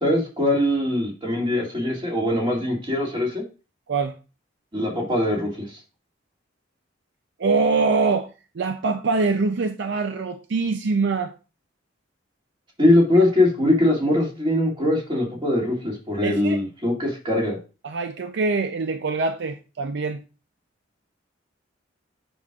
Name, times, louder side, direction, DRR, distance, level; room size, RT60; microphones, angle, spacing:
voice 1, 0.0-3.4 4.7-5.8 12.8-17.6, left 1 dB, 25° right, 2.3 m, -22 dB
voice 2, 7.4-8.3 8.5-11.3 13.1-13.2 16.2-16.6 17.8-20.2, right 4 dB, 65° right, 0.5 m, -24 dB
7.9 x 6.1 x 2.4 m
head